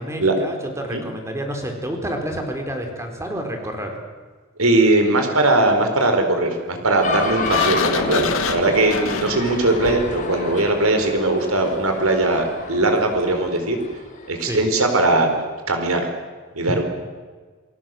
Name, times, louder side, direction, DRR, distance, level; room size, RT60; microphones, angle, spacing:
voice 1, 0.0-4.0 14.4-14.6, right 1 dB, 15° right, 3 dB, 4.2 m, -29 dB
voice 2, 4.6-13.8 14.3-15.3 15.7-16.1 16.5-16.8, right 2 dB, 80° right, 5 dB, 4.6 m, -19 dB
sound 1, 7.0-14.7, left 3 dB, 40° left, 4.7 m, -30 dB
Sliding door, 7.4-10.2, left 5 dB, 70° left, 1.8 m, -27 dB
28.5 x 20.0 x 7.8 m, 1.5 s
head